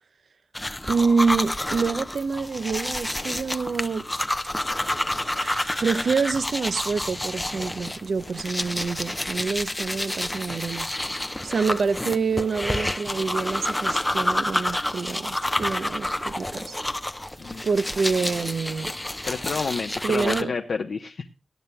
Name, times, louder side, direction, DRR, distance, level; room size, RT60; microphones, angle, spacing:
sound 1, 0.5-20.4, left 1 dB, 10° left, 0.6 m, -29 dB
voice 1, 0.9-4.0 5.3-10.9 11.4-16.8 17.6-18.9 20.0-20.5, right 5 dB, 65° right, 0.7 m, -26 dB
voice 2, 19.2-21.3, left 5 dB, 70° left, 0.8 m, -29 dB
18.0 x 12.0 x 2.2 m
wide cardioid pair, 105°, 0 cm